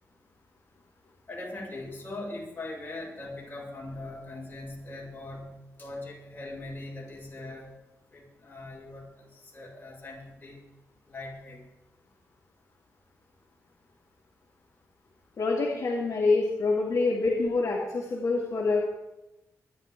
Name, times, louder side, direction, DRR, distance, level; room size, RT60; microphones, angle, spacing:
voice 1, 1.3-5.5 5.8-7.7 8.1-9.1 9.5-10.6 11.1-11.6, left 2 dB, 30° left, -4 dB, 6.6 m, -40 dB
voice 2, 15.4-18.9, left 3 dB, 65° left, -4 dB, 2.5 m, -26 dB
25.0 x 10.5 x 3.7 m, 0.93 s
wide cardioid pair, 120°, 6 cm